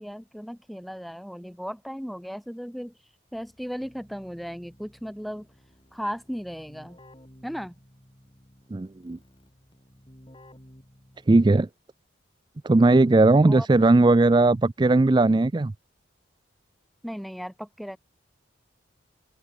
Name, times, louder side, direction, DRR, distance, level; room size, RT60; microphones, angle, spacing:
voice 1, 0.0-3.0 3.3-5.5 5.9-7.0 7.4-7.8 13.5-13.7 17.0-18.0, equal, ahead, 2.7 m, -36 dB
Keyboard (musical), 3.3-11.6, equal, 25° left, 4.8 m, -54 dB
voice 2, 8.7-9.2 11.3-11.7 12.6-15.7, right 2 dB, 25° right, 0.4 m, -18 dB
head